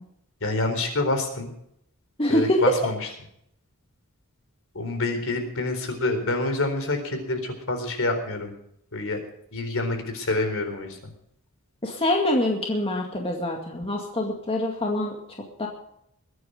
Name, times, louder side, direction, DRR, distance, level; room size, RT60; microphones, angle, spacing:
voice 1, 0.4-1.5 2.3-3.0 4.7-7.4 7.7-8.5 8.9-9.2 9.5-11.0, left 2 dB, 65° left, 6 dB, 4.1 m, -27 dB
voice 2, 2.2-2.8 11.8-15.1 15.6-15.7, left 1 dB, 25° left, 1 dB, 2.1 m, -24 dB
22.0 x 9.5 x 5.1 m, 0.73 s
head